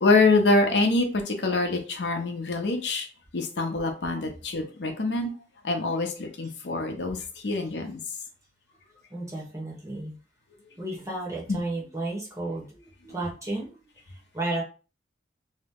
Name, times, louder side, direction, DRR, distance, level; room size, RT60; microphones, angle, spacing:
voice 1, 0.0-3.1 3.3-5.3 5.6-7.2 7.4-8.0 11.5-11.6, left 3 dB, 70° left, 0.6 m, -25 dB
voice 2, 9.1-10.2 10.8-13.7 14.3-14.6, right 2 dB, 20° right, 0.9 m, -33 dB
2.8 x 2.0 x 3.5 m
head